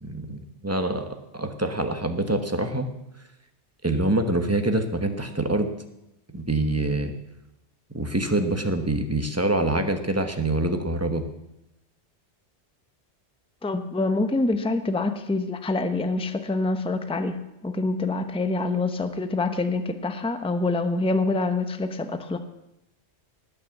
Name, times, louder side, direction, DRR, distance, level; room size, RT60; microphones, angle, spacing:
voice 1, 0.0-2.9 3.8-5.7 6.3-7.1 7.9-11.2, right 2 dB, 15° right, 6 dB, 1.1 m, -25 dB
voice 2, 13.6-17.4 17.6-22.4, left 2 dB, 5° left, 9 dB, 0.7 m, -26 dB
19.0 x 6.5 x 7.3 m, 0.89 s
omnidirectional pair, 1.2 m